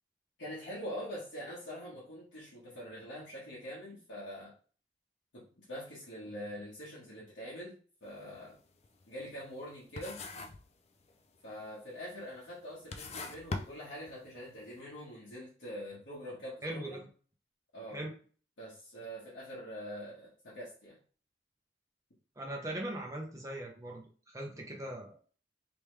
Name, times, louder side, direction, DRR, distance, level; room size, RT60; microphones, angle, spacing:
voice 1, 0.4-4.5 5.3-8.6 9.1-10.2 11.4-17.0 17.7-18.0 18.6-21.0, equal, 90° left, -9 dB, 1.5 m, -44 dB
sound 1, 8.0-8.3 8.7-9.7 10.0-10.7 11.0-11.5 12.2-12.3 12.7-14.4, left 3 dB, 35° left, 0.3 m, -41 dB
voice 2, 16.6-17.1 17.9-18.2 22.4-25.2, right 1 dB, 15° right, -1 dB, 0.8 m, -40 dB
3.3 x 3.3 x 3.2 m, 0.42 s
head